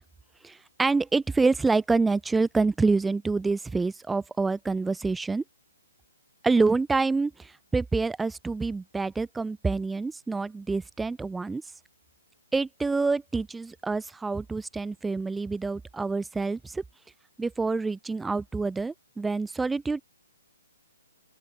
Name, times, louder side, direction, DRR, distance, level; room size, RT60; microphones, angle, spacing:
voice 1, 0.4-5.4 6.4-11.6 12.5-16.8 17.4-20.0, right 3 dB, 5° right, 2.3 m, -27 dB
open air
figure-of-eight pair, 130°, 0 cm